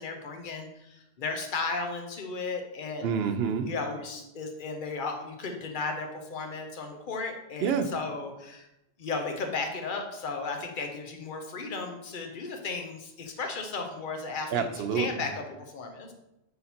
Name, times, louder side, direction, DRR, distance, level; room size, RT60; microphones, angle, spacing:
voice 1, 0.0-3.1 3.6-8.7 9.0-14.6 14.9-16.1, left 4 dB, 50° left, 4 dB, 1.0 m, -35 dB
voice 2, 3.0-3.7 7.6-7.9 14.5-15.3, right 6 dB, 70° right, 8 dB, 0.8 m, -28 dB
5.7 x 3.8 x 4.3 m, 0.88 s
omnidirectional pair, 1.1 m